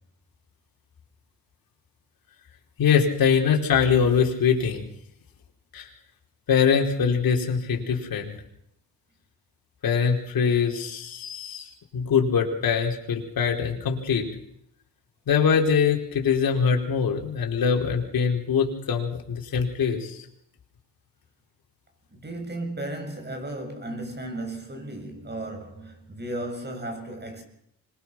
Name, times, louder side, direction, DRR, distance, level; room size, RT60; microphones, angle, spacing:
voice 1, 2.8-4.8 5.7-5.9 6.5-8.3 9.8-14.3 15.3-20.2, left 6 dB, 60° left, 4.8 m, -23 dB
voice 2, 22.1-27.4, right 1 dB, 25° right, 7.5 m, -35 dB
25.5 x 21.5 x 6.2 m
cardioid pair, 80°, 40 cm